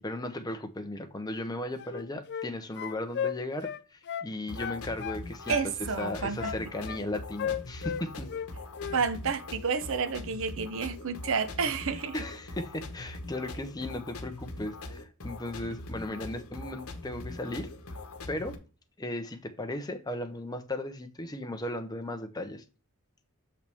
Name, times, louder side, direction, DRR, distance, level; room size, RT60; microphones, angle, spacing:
voice 1, 0.0-5.6 6.0-8.3 12.1-17.7 18.3-18.6 19.0-22.6, left 1 dB, 15° left, 0.8 m, -36 dB
sound 1, 1.8-2.5 2.8-4.3 4.6-5.7 6.0-7.0 7.4-8.5 8.8-9.0, left 8 dB, 50° left, 0.4 m, -35 dB
sound 2, 4.5-18.5, left 2 dB, 70° left, 1.1 m, -42 dB
voice 2, 5.5-6.5 8.9-12.1, right 5 dB, 60° right, 0.7 m, -30 dB
6.5 x 5.8 x 3.5 m
head